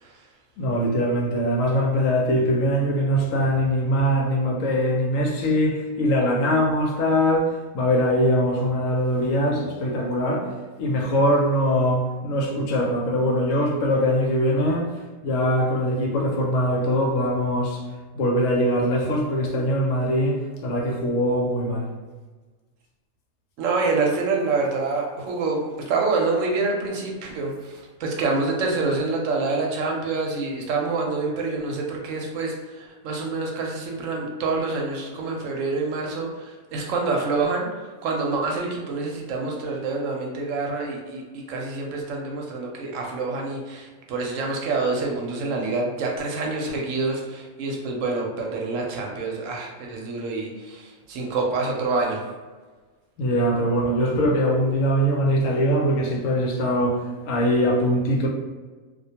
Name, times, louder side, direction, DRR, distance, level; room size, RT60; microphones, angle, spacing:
voice 1, 0.6-10.5 10.8-14.9 15.2-17.8 18.2-21.9 53.2-58.3, equal, 80° left, 0 dB, 0.9 m, -22 dB
voice 2, 23.6-37.7 38.0-41.2 41.5-52.2, right 3 dB, 75° right, 0 dB, 0.9 m, -26 dB
2.3 x 2.1 x 2.7 m, 1.3 s
omnidirectional pair, 1.4 m